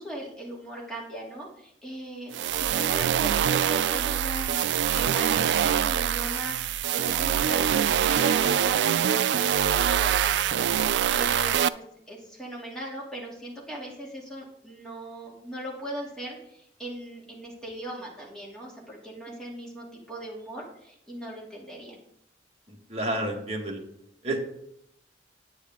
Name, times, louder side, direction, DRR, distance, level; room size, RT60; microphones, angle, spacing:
voice 1, 0.0-22.0, right 1 dB, 5° left, -4 dB, 2.5 m, -39 dB
sound 1, 2.3-11.7, right 9 dB, 75° right, 0.3 m, -24 dB
voice 2, 22.9-23.8 24.2-24.4, right 1 dB, 35° right, 0 dB, 1.7 m, -29 dB
9.6 x 9.0 x 3.6 m, 0.75 s
head